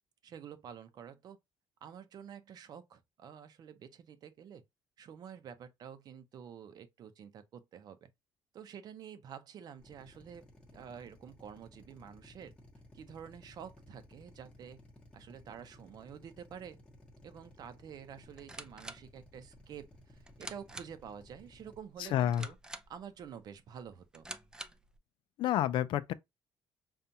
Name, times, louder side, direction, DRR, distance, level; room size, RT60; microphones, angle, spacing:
voice 1, 0.2-1.4 1.8-4.6 5.0-8.1 8.5-10.4 10.7-12.5 12.9-14.8 15.1-16.8 17.2-22.6 22.9-24.3, right 8 dB, 50° right, 0.7 m, -49 dB
Drill, 9.8-21.8, left 1 dB, 10° left, 1.0 m, -58 dB
sound 1, 18.2-25.0, right 2 dB, 10° right, 0.4 m, -50 dB
voice 2, 22.1-22.4 25.4-26.1, left 11 dB, 70° left, 0.4 m, -29 dB
5.3 x 2.4 x 2.8 m
cardioid pair, 150°, 9 cm